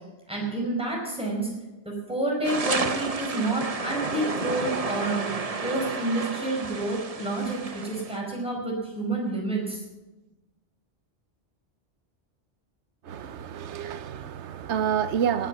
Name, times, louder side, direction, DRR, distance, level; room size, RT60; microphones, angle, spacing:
voice 1, 0.3-1.5 1.8-5.2 5.6-9.8, right 2 dB, 5° right, 5.0 m, -29 dB
sound 1, 2.4-8.2, right 4 dB, 35° right, 0.9 m, -31 dB
voice 2, 13.1-15.5, right 8 dB, 80° right, 1.1 m, -28 dB
18.0 x 8.1 x 8.3 m
omnidirectional pair, 1.2 m